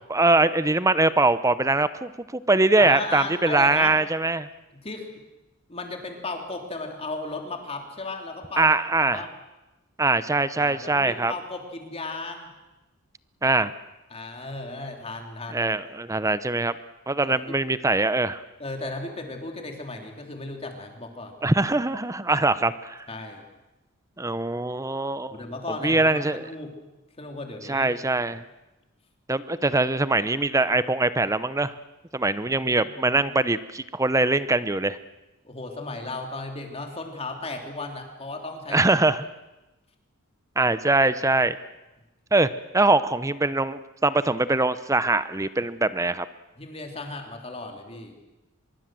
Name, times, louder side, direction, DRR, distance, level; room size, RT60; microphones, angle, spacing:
voice 1, 0.1-4.5 8.6-9.3 10.0-11.3 13.4-13.7 15.5-16.7 17.1-18.4 21.4-23.1 24.2-25.4 25.8-26.5 27.7-28.4 29.3-31.7 32.1-35.0 38.7-39.2 40.6-41.6 42.3-42.5 42.7-46.2, right 2 dB, 15° right, 14 dB, 0.7 m, -22 dB
voice 2, 2.8-4.0 4.7-5.1 5.7-8.7 9.0-9.3 10.6-12.5 14.1-15.7 17.2-17.5 18.6-21.4 23.1-23.4 25.3-26.7 27.2-27.9 32.6-32.7 35.4-38.8 46.6-48.2, left 2 dB, 30° left, 3 dB, 3.3 m, -35 dB
23.5 x 22.5 x 7.6 m, 1.0 s
head